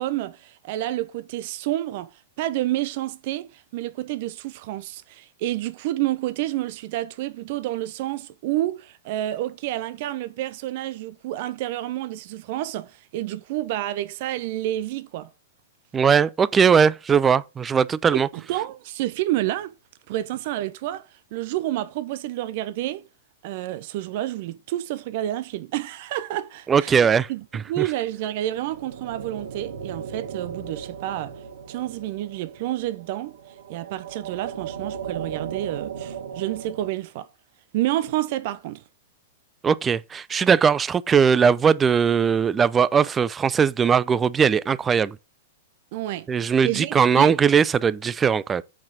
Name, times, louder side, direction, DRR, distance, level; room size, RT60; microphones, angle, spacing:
voice 1, 0.0-2.1 2.4-15.3 18.1-19.7 20.1-23.1 23.4-31.3 31.7-33.3 33.7-37.3 37.7-38.8 45.9-47.4, right 14 dB, 50° right, 0.8 m, -29 dB
voice 2, 15.9-18.3 26.7-27.9 39.6-45.2 46.3-48.6, right 6 dB, 20° right, 0.6 m, -20 dB
sound 1, 28.0-36.9, right 7 dB, 70° right, 2.0 m, -37 dB
8.8 x 5.9 x 5.2 m
figure-of-eight pair, 105°, 0 cm